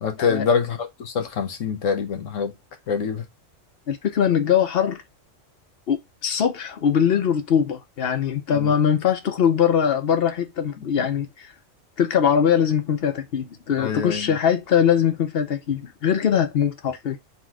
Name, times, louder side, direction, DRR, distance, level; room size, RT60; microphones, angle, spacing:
voice 1, 0.0-2.5 2.9-3.3 8.5-8.7 10.8-10.9 13.8-14.4, left 6 dB, 75° left, 1.3 m, -25 dB
voice 2, 3.9-5.0 5.9-11.5 12.0-17.2, left 8 dB, 55° left, 0.9 m, -21 dB
4.1 x 3.0 x 3.6 m
omnidirectional pair, 1.4 m